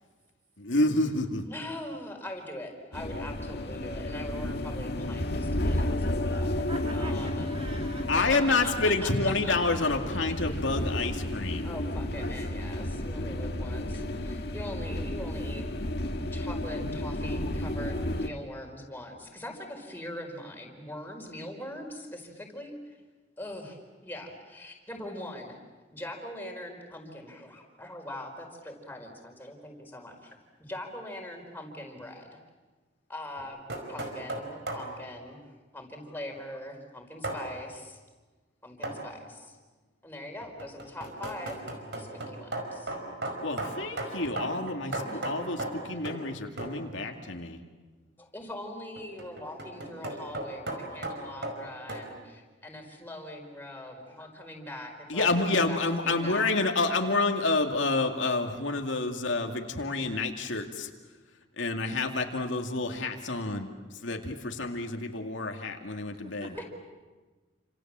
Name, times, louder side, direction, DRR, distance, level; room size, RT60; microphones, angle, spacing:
voice 1, 0.6-1.4 8.1-11.7 43.4-47.6 55.1-60.9 61.6-63.7 64.0-66.6, left 3 dB, 75° left, 3 dB, 2.4 m, -28 dB
voice 2, 1.5-6.7 6.9-7.5 8.2-8.4 8.6-9.5 11.6-23.0 23.4-25.6 25.9-32.4 33.1-33.6 33.9-38.0 38.6-39.6 40.0-41.6 42.0-42.9 45.0-45.3 48.2-56.6 66.6-66.7, left 1 dB, 10° left, 1 dB, 4.8 m, -42 dB
sound 1, 2.9-18.3, left 1 dB, 55° left, 1.9 m, -32 dB
voice 3, 6.6-8.1 56.2-56.7 66.2-66.6, right 2 dB, 30° right, 2 dB, 3.0 m, -43 dB
sound 2, 33.4-34.9 37.2-37.5 38.8-39.1 40.4-46.3 46.6-46.8 49.0-52.1, right 2 dB, 60° right, 5.0 m, -36 dB
29.5 x 27.0 x 7.5 m, 1.3 s
head